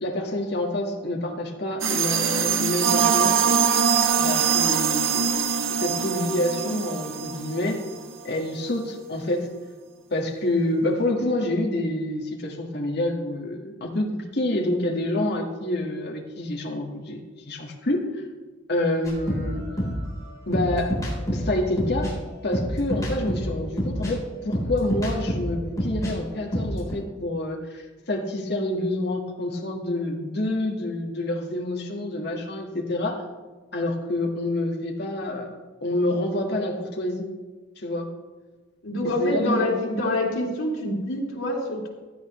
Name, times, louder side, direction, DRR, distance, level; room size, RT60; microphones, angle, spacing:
voice 1, 0.0-3.4 4.2-5.3 5.7-7.8 8.2-9.5 10.1-17.2 17.5-18.2 18.7-19.6 20.5-20.9 21.3-22.2 22.4-33.2 33.7-35.5 35.8-37.3 37.8-38.1 39.2-39.7, left 1 dB, 55° left, 0 dB, 1.6 m, -27 dB
sound 1, 1.8-8.1, right 6 dB, 90° right, 0.9 m, -23 dB
sound 2, 19.0-26.1 26.4-26.9, equal, 15° left, 3.8 m, -28 dB
voice 2, 38.8-41.9, left 1 dB, 90° left, -2 dB, 2.8 m, -26 dB
16.0 x 11.0 x 3.1 m, 1.3 s
head